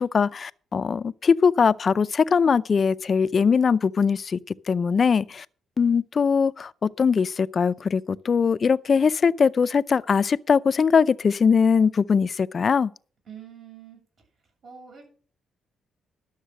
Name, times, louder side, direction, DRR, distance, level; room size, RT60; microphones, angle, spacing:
voice 1, 0.0-5.5 5.8-12.9, left 6 dB, 40° left, 0.5 m, -21 dB
voice 2, 13.3-14.0 14.6-15.1, right 7 dB, 60° right, 7.5 m, -44 dB
12.0 x 7.3 x 6.5 m
cardioid pair, 90°, 0 cm